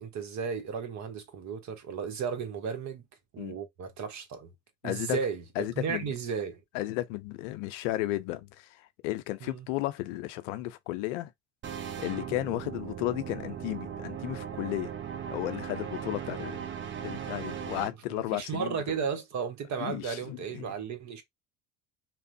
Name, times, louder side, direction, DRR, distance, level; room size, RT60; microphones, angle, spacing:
voice 1, 0.0-3.0 3.3-4.5 4.8-6.6 9.4-9.7 18.1-21.2, right 6 dB, 50° right, 0.9 m, -34 dB
voice 2, 4.8-5.2 5.6-6.1 6.7-11.3 12.0-14.9 15.3-16.6 17.0-18.8 19.8-20.7, left 16 dB, 80° left, 0.5 m, -34 dB
sound 1, 11.6-17.9, right 8 dB, 30° right, 0.6 m, -38 dB
2.8 x 2.0 x 2.5 m
hypercardioid pair, 65°, 37 cm